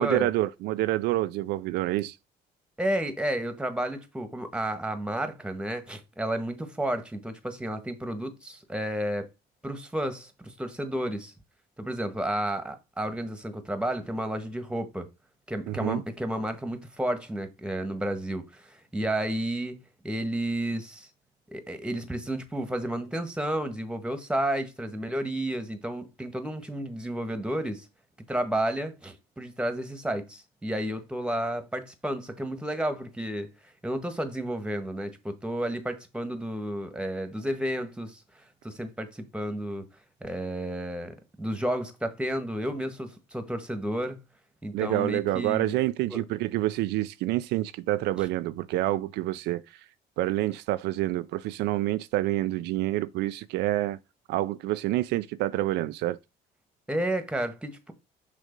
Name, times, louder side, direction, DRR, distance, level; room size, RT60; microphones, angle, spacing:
voice 1, 0.0-2.1 15.7-16.0 44.7-49.6 50.2-54.0 54.3-56.2, right 16 dB, 85° right, 0.5 m, -27 dB
voice 2, 2.8-9.3 9.6-11.3 11.8-15.1 15.5-19.8 20.0-21.1 21.5-27.8 28.3-33.5 33.8-39.9 40.2-44.2 44.6-45.8 46.1-46.2 48.2-48.3 56.9-57.9, right 1 dB, 5° right, 1.4 m, -31 dB
6.5 x 3.8 x 5.2 m
cardioid pair, 110°, 17 cm